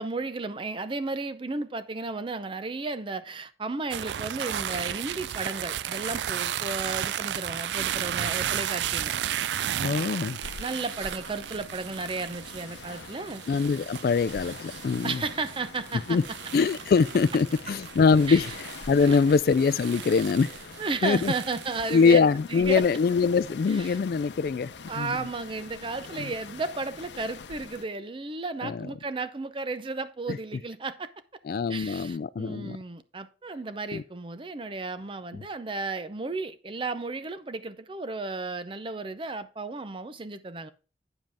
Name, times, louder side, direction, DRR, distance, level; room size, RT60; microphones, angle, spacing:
voice 1, 0.0-9.1 10.6-13.4 15.0-16.2 17.7-17.8 18.3-18.4 19.0-19.2 20.8-22.2 22.5-22.8 23.7-24.0 24.9-31.1 31.7-40.7, right 3 dB, 30° right, 0.5 m, -34 dB
sound 1, 3.9-22.2, right 10 dB, 80° right, 0.4 m, -34 dB
voice 2, 9.8-10.4 13.5-15.2 16.1-16.2 16.5-18.5 18.9-20.6 21.0-21.3 21.9-24.7 25.0-25.1 28.6-28.9 30.3-30.4 31.5-32.8 33.9-34.0, left 5 dB, 55° left, 0.3 m, -23 dB
sound 2, 10.4-27.9, left 4 dB, 85° left, 0.7 m, -45 dB
8.9 x 7.4 x 3.4 m
head